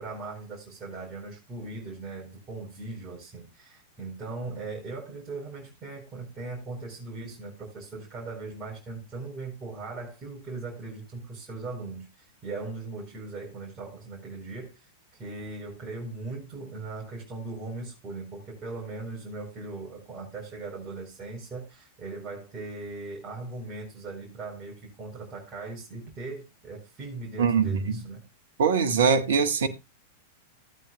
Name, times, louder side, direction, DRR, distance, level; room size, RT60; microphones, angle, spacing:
voice 1, 0.0-14.9 15.2-28.2, right 3 dB, 20° right, 4.4 m, -39 dB
voice 2, 27.4-28.0 28.6-29.7, right 6 dB, 60° right, 1.4 m, -22 dB
16.0 x 9.0 x 2.3 m
figure-of-eight pair, 95°, 0 cm